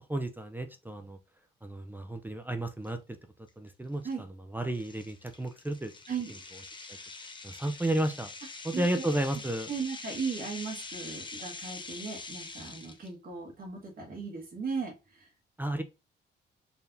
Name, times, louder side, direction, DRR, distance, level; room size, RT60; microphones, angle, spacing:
voice 1, 0.1-1.2 1.6-3.0 3.6-5.9 7.4-8.3 8.6-9.7 15.6-15.8, right 1 dB, 10° right, 8 dB, 0.5 m, -32 dB
sound 1, 2.8-2.9 3.5-3.7 4.1-4.2 4.7-13.1, left 3 dB, 25° left, 1.0 m, -44 dB
voice 2, 8.7-9.0 9.7-15.3, right 5 dB, 50° right, 0 dB, 1.6 m, -37 dB
4.6 x 3.3 x 2.6 m, 0.28 s
cardioid pair, 90°, 20 cm